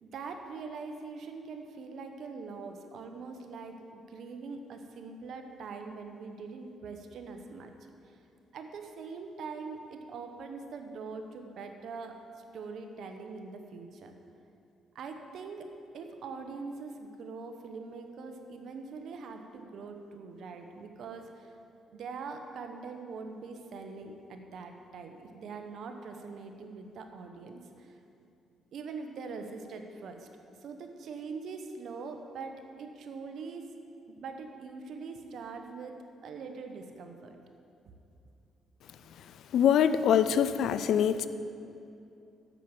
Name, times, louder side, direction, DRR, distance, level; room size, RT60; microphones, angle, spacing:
voice 1, 0.0-7.7 8.5-12.2 12.5-14.1 14.9-15.7 15.9-21.5 21.9-28.0 28.7-30.3 30.6-33.7 34.2-37.4 37.8-37.9, right 4 dB, 70° right, 5 dB, 1.0 m, -43 dB
voice 2, 39.5-41.3, left 9 dB, 75° left, 13 dB, 0.4 m, -24 dB
8.2 x 7.5 x 7.2 m, 2.6 s
cardioid pair, 90°, 0 cm